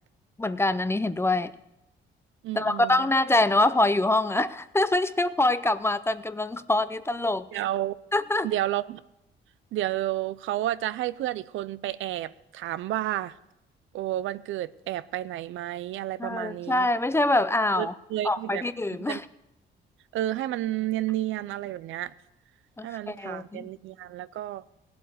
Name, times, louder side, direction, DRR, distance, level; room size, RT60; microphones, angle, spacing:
voice 1, 0.4-1.5 2.6-7.5 8.1-8.5 16.2-17.9 18.2-19.2 22.8-23.7, left 2 dB, 10° left, 0.6 m, -25 dB
voice 2, 2.4-3.1 7.5-8.0 8.4-9.0 9.7-13.4 13.9-16.9 17.8-18.6 18.9-19.2 20.1-22.1 22.8-24.6, right 14 dB, 80° right, 0.5 m, -31 dB
17.0 x 8.0 x 6.6 m
cardioid pair, 90°, 20 cm